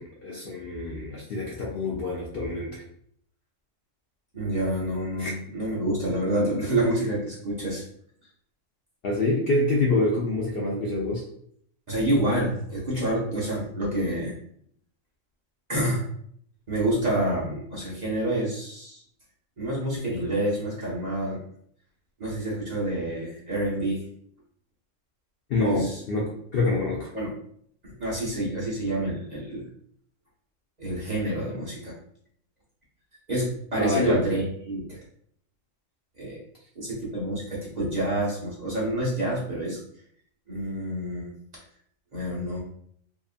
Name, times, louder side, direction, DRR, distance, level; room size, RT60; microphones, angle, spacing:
voice 1, 0.0-2.8 5.2-5.3 9.0-11.2 25.5-27.1 33.8-34.2, left 2 dB, 65° left, -3 dB, 0.6 m, -26 dB
voice 2, 4.3-7.8 11.9-14.3 15.7-16.0 16.7-19.0 19.6-21.4 22.2-24.0 25.8-26.0 27.1-27.3 27.8-29.6 30.8-31.9 33.3-35.0 36.2-36.4 36.8-39.8 40.5-41.3 42.1-42.6, right 1 dB, 40° right, -6 dB, 0.7 m, -28 dB
2.8 x 2.4 x 2.4 m, 0.66 s
omnidirectional pair, 1.4 m